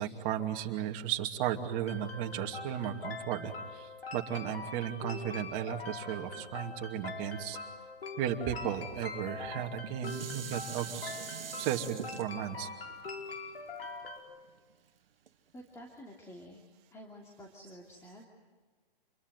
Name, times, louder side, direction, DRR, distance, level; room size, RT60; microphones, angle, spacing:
voice 1, 0.0-7.6 8.2-11.2 11.6-12.7, right 10 dB, 30° right, 3 dB, 2.6 m, -35 dB
sound 1, 1.9-14.2, left 4 dB, 80° left, 4.9 m, -43 dB
Dishes pots and pans, 9.4-14.7 15.3-15.4, right 8 dB, 70° right, 1.8 m, -44 dB
voice 2, 15.5-16.6 16.9-18.2, equal, 10° left, 0 dB, 2.7 m, -50 dB
27.5 x 22.5 x 9.3 m, 1.4 s
hypercardioid pair, 145°, 29 cm